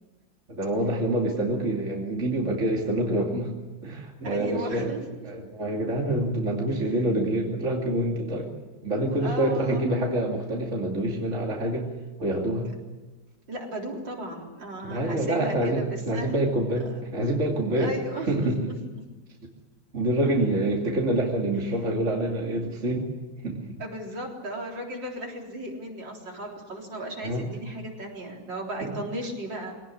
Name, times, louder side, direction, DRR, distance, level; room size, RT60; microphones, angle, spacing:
voice 1, 0.5-3.5 3.8-4.9 5.2-8.5 8.8-11.9 12.2-12.7 14.8-18.0 18.3-18.7 19.9-23.1 23.4-23.8 27.2-27.5 28.8-28.9, right 1 dB, 35° right, 0 dB, 3.0 m, -26 dB
voice 2, 4.2-5.0 9.2-10.0 13.5-16.5 16.9-17.0 17.8-18.8 23.8-29.8, right 1 dB, 65° right, 0 dB, 4.5 m, -36 dB
23.5 x 18.0 x 9.9 m, 1.2 s
omnidirectional pair, 2.2 m